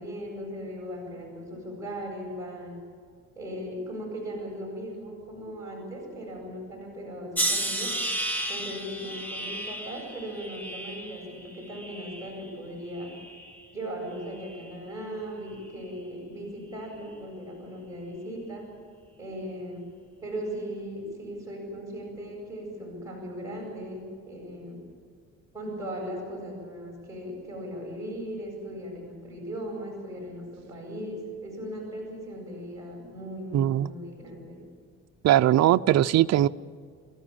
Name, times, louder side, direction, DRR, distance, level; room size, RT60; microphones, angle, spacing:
voice 1, 0.0-2.8 3.3-7.9 8.5-13.1 13.7-18.6 19.2-19.8 20.2-24.8 25.5-34.6, equal, 10° right, -1 dB, 8.0 m, -38 dB
sound 1, 7.4-12.5 12.9-13.6 14.4-14.7, right 1 dB, 5° left, 1.8 m, -33 dB
voice 2, 33.5-33.9 35.2-36.5, right 12 dB, 60° right, 10 dB, 0.6 m, -20 dB
29.0 x 14.0 x 8.7 m, 2.1 s
cardioid pair, 135°, 29 cm